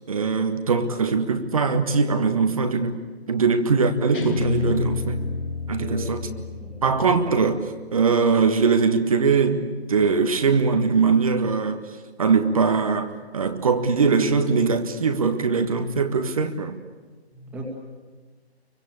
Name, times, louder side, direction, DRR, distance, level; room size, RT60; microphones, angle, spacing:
voice 1, 0.1-3.0 3.3-5.2 5.7-6.2 6.8-7.6 7.9-11.8 12.2-16.8, right 5 dB, 35° right, 8 dB, 1.5 m, -21 dB
Guitar, 4.1-7.3, left 4 dB, 50° left, 2.9 m, -29 dB
voice 2, 5.8-6.8 17.3-17.6, right 1 dB, 5° right, -1 dB, 2.3 m, -36 dB
27.0 x 24.0 x 8.5 m, 1.4 s
figure-of-eight pair, 145°, 33 cm